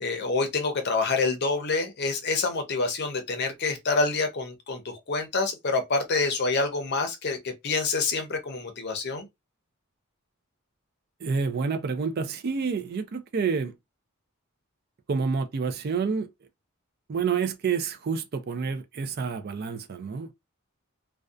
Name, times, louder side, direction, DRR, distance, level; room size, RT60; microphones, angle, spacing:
voice 1, 0.0-9.3, left 3 dB, 50° left, 0.6 m, -27 dB
voice 2, 11.2-13.7 15.1-16.3 17.1-20.3, right 5 dB, 45° right, 0.4 m, -28 dB
2.5 x 2.2 x 2.3 m
head